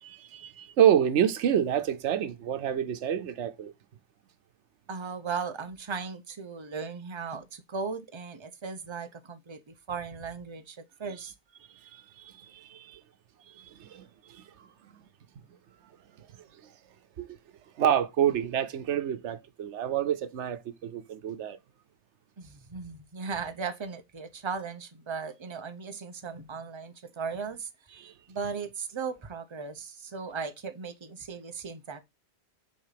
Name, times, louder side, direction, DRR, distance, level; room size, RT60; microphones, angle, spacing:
voice 1, 0.0-3.7 11.8-13.0 13.5-14.9 16.2-16.5 17.2-17.4 17.8-21.6 28.0-28.1, right 9 dB, 90° right, 1.0 m, -28 dB
voice 2, 4.9-11.3 22.4-27.7 28.3-32.0, right 5 dB, 30° right, 0.8 m, -37 dB
6.3 x 4.0 x 5.8 m
omnidirectional pair, 1.2 m